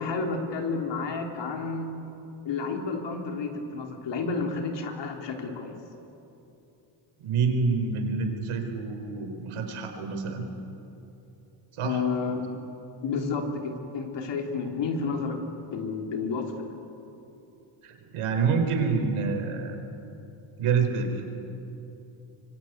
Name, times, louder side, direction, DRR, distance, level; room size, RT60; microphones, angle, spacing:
voice 1, 0.0-1.9 2.4-5.7 11.8-12.5 13.0-15.4 15.7-16.7, left 4 dB, 55° left, 3 dB, 3.4 m, -31 dB
voice 2, 7.2-10.5 11.7-12.0 17.8-19.8 20.6-21.2, right 5 dB, 80° right, 4 dB, 4.5 m, -27 dB
25.0 x 24.5 x 9.4 m, 2.9 s
cardioid pair, 155°, 50 cm